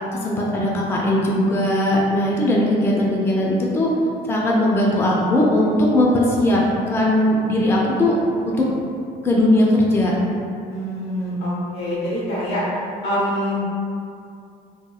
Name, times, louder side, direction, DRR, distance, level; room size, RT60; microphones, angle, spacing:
voice 1, 0.2-3.9 4.2-6.6 6.9-8.1 8.5-8.6 9.2-10.1, left 1 dB, 15° left, -3 dB, 0.4 m, -19 dB
voice 2, 10.7-12.6 13.0-13.6, equal, 85° left, -8 dB, 1.1 m, -25 dB
2.9 x 2.8 x 2.3 m, 2.5 s
cardioid pair, 110°, 17 cm